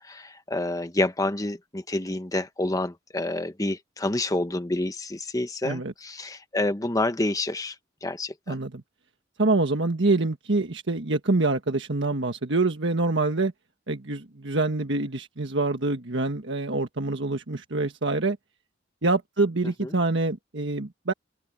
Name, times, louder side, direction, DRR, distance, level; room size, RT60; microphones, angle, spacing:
voice 1, 0.0-7.7 8.0-8.5 19.8-19.9, left 2 dB, 20° left, 1.1 m, -28 dB
voice 2, 8.5-8.8 9.4-13.5 13.9-18.4 19.0-21.1, right 2 dB, 75° right, 1.5 m, -25 dB
open air
head